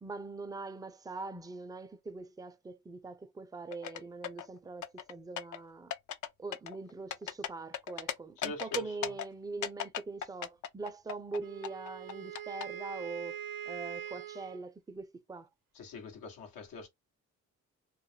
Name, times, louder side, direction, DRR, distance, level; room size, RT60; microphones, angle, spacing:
voice 1, 0.0-5.9 6.4-13.4 13.7-15.5, right 3 dB, 10° right, 0.4 m, -42 dB
sound 1, 3.7-4.5 4.8-5.6 5.9-6.3 6.5-8.1 8.4-9.3 9.6-11.4 11.6-12.6, left 9 dB, 65° left, 0.5 m, -37 dB
voice 2, 8.4-9.1 15.7-16.9, left 4 dB, 90° left, 0.9 m, -43 dB
Wind instrument woodwind instrument, 11.4-14.6, right 10 dB, 75° right, 0.6 m, -43 dB
2.3 x 2.0 x 3.2 m
cardioid pair, 60°, 33 cm